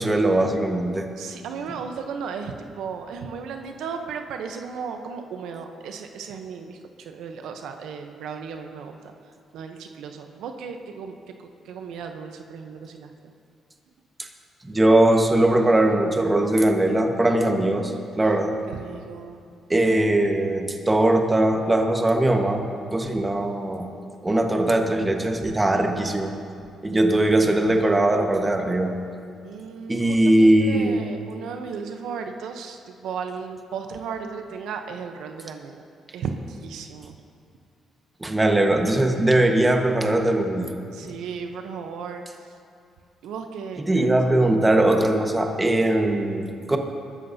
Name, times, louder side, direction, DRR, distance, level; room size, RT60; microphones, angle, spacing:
voice 1, 0.0-1.1 14.7-17.9 18.2-18.6 19.7-23.9 24.2-26.4 26.8-28.9 29.9-31.0 38.2-40.7 43.8-46.8, right 1 dB, 15° right, 3 dB, 1.4 m, -20 dB
voice 2, 1.2-9.0 9.5-13.1 18.2-18.3 18.7-19.4 29.4-35.8 36.1-37.1 40.9-42.2 43.2-44.1, right 6 dB, 85° right, 5 dB, 0.8 m, -35 dB
20.5 x 13.5 x 2.8 m, 2.4 s
cardioid pair, 90°, 0 cm